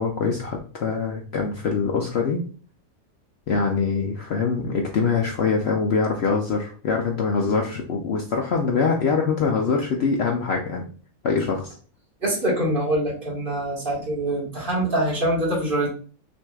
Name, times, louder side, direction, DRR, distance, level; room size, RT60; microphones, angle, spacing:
voice 1, 0.0-2.4 3.5-10.8 11.2-11.7, left 5 dB, 60° left, 1 dB, 0.8 m, -24 dB
voice 2, 12.2-15.9, right 1 dB, 40° right, -4 dB, 1.7 m, -24 dB
6.1 x 2.7 x 2.3 m, 0.40 s
omnidirectional pair, 1.5 m